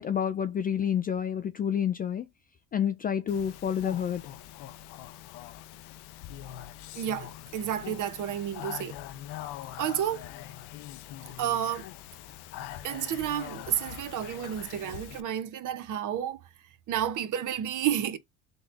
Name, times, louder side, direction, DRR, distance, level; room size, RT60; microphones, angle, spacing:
voice 1, 0.0-2.3 2.7-4.2, left 8 dB, 25° left, 0.3 m, -29 dB
Speech, 3.3-15.2, left 12 dB, 70° left, 0.7 m, -43 dB
voice 2, 6.9-9.0 9.8-10.2 11.4-11.9 12.8-16.4 16.9-18.2, right 10 dB, 50° right, 0.9 m, -31 dB
3.9 x 2.9 x 3.7 m
supercardioid pair, 95°, 40 cm